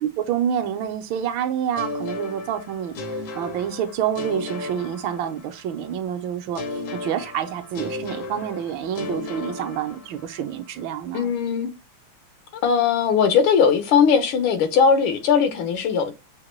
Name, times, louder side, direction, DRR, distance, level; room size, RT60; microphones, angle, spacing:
voice 1, 0.0-2.9 3.3-11.3, right 9 dB, 75° right, 1.4 m, -28 dB
sound 1, 1.8-5.7 6.5-10.4, left 2 dB, 65° left, 0.8 m, -34 dB
voice 2, 11.1-11.7 12.6-16.1, left 6 dB, 85° left, 1.7 m, -19 dB
6.4 x 2.2 x 3.0 m
omnidirectional pair, 2.2 m